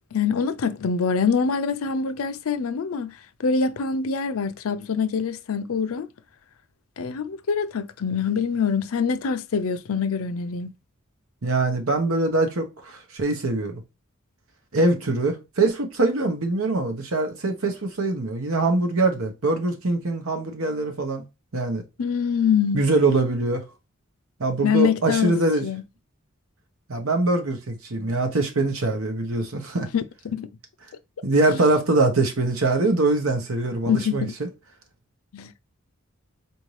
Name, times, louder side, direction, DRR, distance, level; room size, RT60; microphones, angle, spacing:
voice 1, 0.1-6.1 7.0-10.7 22.0-22.8 24.6-25.3 25.6-25.8 29.9-30.0 30.4-30.5 31.5-31.6 33.9-34.3 35.3-35.5, left 6 dB, 85° left, 0.5 m, -24 dB
voice 2, 11.4-13.8 14.7-21.2 21.5-21.8 22.7-23.6 24.4-25.6 26.9-29.9 31.2-34.5, right 2 dB, 80° right, 1.0 m, -23 dB
4.2 x 2.7 x 3.2 m
head